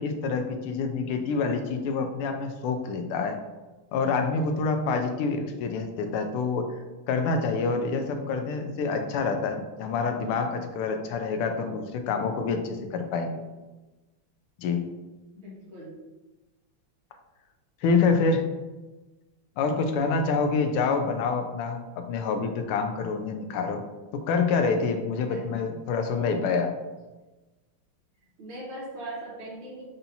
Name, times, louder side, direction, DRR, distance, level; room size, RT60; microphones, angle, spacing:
voice 1, 0.0-3.4 3.9-6.8 7.1-13.3 14.6-14.9 17.8-18.4 19.6-23.8 24.1-26.7, left 4 dB, 90° left, 6 dB, 1.5 m, -27 dB
voice 2, 15.3-16.0 25.3-25.6 28.4-29.8, right 1 dB, 70° right, -6 dB, 2.3 m, -40 dB
7.0 x 2.7 x 2.7 m, 1.1 s
omnidirectional pair, 2.4 m